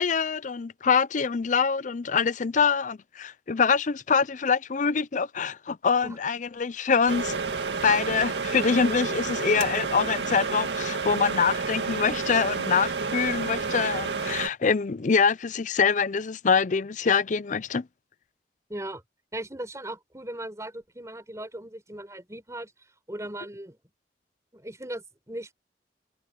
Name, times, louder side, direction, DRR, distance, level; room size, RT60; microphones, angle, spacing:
voice 1, 0.0-7.4 7.8-17.9, left 5 dB, 45° left, 0.5 m, -25 dB
sound 1, 7.1-14.5, right 4 dB, 75° right, 2.1 m, -30 dB
voice 2, 18.7-19.0 19.3-22.7 23.1-23.8 24.5-25.5, right 1 dB, 20° right, 4.9 m, -38 dB
head